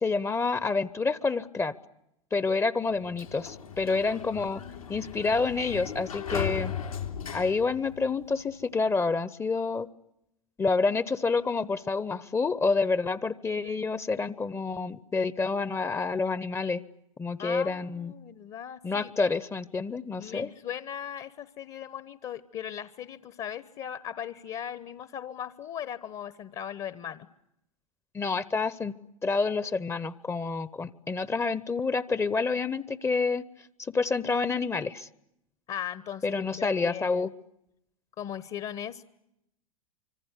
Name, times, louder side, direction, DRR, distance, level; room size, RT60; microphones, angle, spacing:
voice 1, 0.0-1.7 2.3-4.6 4.9-6.7 7.3-9.9 10.6-16.8 17.2-18.1 18.8-20.5 28.1-28.9 29.2-33.4 33.8-35.1 36.2-37.3, left 4 dB, 15° left, 18 dB, 0.9 m, -28 dB
Sliding door, 2.9-8.5, left 7 dB, 80° left, 3.3 m, -37 dB
voice 2, 4.4-5.1 17.4-19.1 20.2-27.3 35.7-37.3 38.2-39.0, left 9 dB, 35° left, 16 dB, 1.2 m, -38 dB
25.5 x 25.5 x 8.3 m, 0.82 s
figure-of-eight pair, 90°, 18 cm